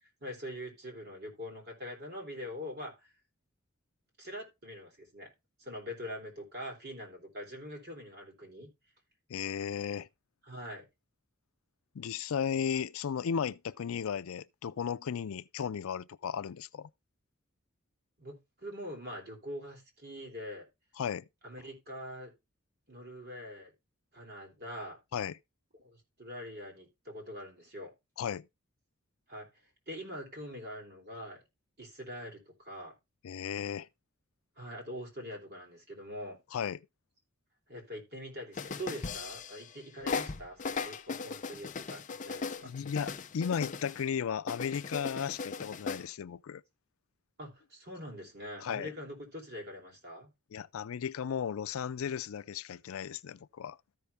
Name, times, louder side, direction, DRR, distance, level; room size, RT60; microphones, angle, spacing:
voice 1, 0.0-3.1 4.2-5.3 5.6-8.7 10.5-10.9 18.2-20.7 21.4-22.3 22.9-23.7 24.1-25.0 25.8-27.9 29.3-29.5 29.9-31.4 31.8-32.9 34.6-36.4 37.7-42.7 47.4-50.3, equal, 50° right, 3.4 m, -44 dB
voice 2, 9.3-10.1 11.9-16.9 21.0-21.3 25.1-25.4 28.2-28.5 33.2-33.9 36.5-36.8 40.7-40.8 42.6-46.6 48.6-48.9 50.5-53.8, left 7 dB, 85° left, 0.4 m, -35 dB
sound 1, 38.5-39.7 40.1-44.0 44.5-46.1, left 4 dB, 35° left, 0.6 m, -38 dB
13.5 x 5.6 x 3.4 m
head